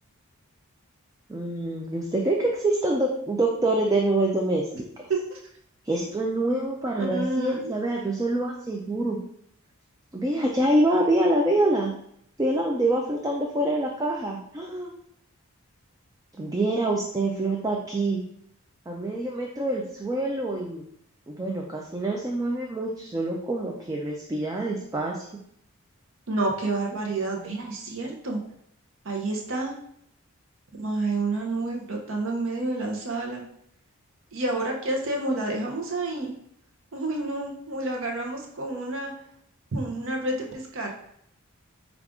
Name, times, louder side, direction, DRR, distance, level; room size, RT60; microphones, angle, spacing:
voice 1, 1.3-4.7 5.8-9.2 10.1-11.9 12.4-14.9 16.4-18.2 18.9-20.8 21.3-25.2, right 1 dB, 15° right, 0 dB, 0.3 m, -26 dB
voice 2, 5.1-5.4 7.0-7.7 26.3-28.4 29.0-29.7 30.8-33.4 34.3-36.3 36.9-39.1 39.7-40.9, right 2 dB, 60° right, 1 dB, 0.7 m, -29 dB
5.0 x 2.4 x 3.5 m, 0.71 s
head